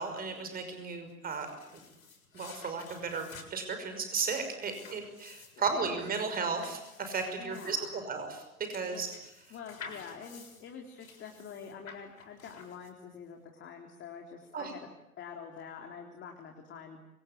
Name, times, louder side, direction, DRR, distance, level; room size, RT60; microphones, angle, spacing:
voice 1, 0.0-1.5 2.3-8.4 8.7-9.1 14.5-14.7, right 5 dB, 20° right, 7 dB, 5.7 m, -34 dB
sound 1, 1.1-13.2, left 5 dB, 65° left, 7.1 m, -52 dB
voice 2, 5.6-6.0 7.4-8.1 8.9-9.0 9.5-14.9 15.2-17.0, left 6 dB, 25° left, 2 dB, 3.8 m, -46 dB
27.0 x 25.5 x 8.7 m, 0.90 s
figure-of-eight pair, 100°, 44 cm